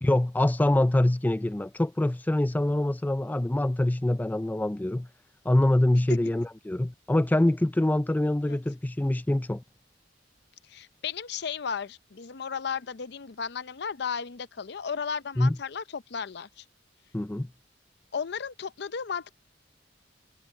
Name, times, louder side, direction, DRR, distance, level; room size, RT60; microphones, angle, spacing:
voice 1, 0.0-5.1 5.5-9.6 15.4-15.6 17.1-17.5, left 1 dB, 10° left, 0.3 m, -25 dB
voice 2, 10.7-16.6 18.1-19.3, left 6 dB, 65° left, 0.6 m, -34 dB
head